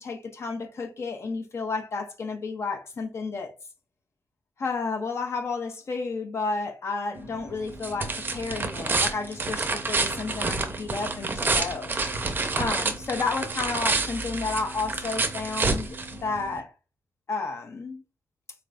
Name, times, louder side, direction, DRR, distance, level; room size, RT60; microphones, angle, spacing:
voice 1, 0.0-3.5 4.6-12.0 12.6-16.7 17.3-18.0, left 4 dB, 50° left, 0.5 m, -31 dB
sound 1, 7.2-16.6, right 3 dB, 35° right, 0.5 m, -29 dB
4.1 x 3.2 x 2.5 m
wide cardioid pair, 160°, 6 cm